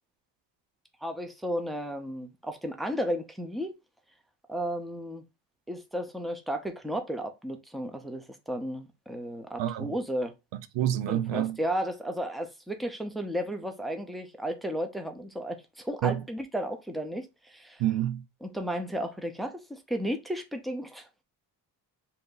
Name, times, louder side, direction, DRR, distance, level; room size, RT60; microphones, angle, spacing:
voice 1, 1.0-3.8 4.5-5.2 5.7-10.3 11.1-17.8 18.4-21.1, equal, ahead, 0.6 m, -34 dB
voice 2, 9.6-9.9 10.7-11.6 16.0-16.2 17.8-18.2, right 12 dB, 85° right, 0.6 m, -27 dB
3.4 x 2.7 x 3.8 m
cardioid pair, 110°, 42 cm